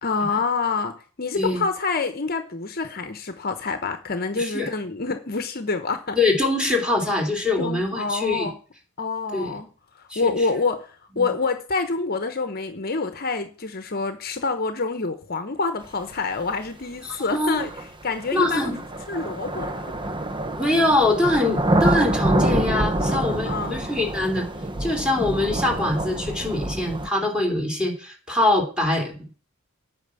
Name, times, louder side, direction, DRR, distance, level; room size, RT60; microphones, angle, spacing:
voice 1, 0.0-6.2 7.6-8.5 9.0-9.7 9.9-18.7 19.1-19.9 23.2-23.9, left 4 dB, 50° left, 1.0 m, -27 dB
voice 2, 4.3-4.7 6.2-8.5 9.3-9.5 10.1-10.3 11.2-11.3 17.1-17.6 18.3-18.8 20.6-24.5 24.8-29.3, left 2 dB, 5° right, 3.3 m, -23 dB
sound 1, 16.5-16.6 17.6-27.1, right 1 dB, 25° right, 0.8 m, -26 dB
9.1 x 6.1 x 8.4 m
head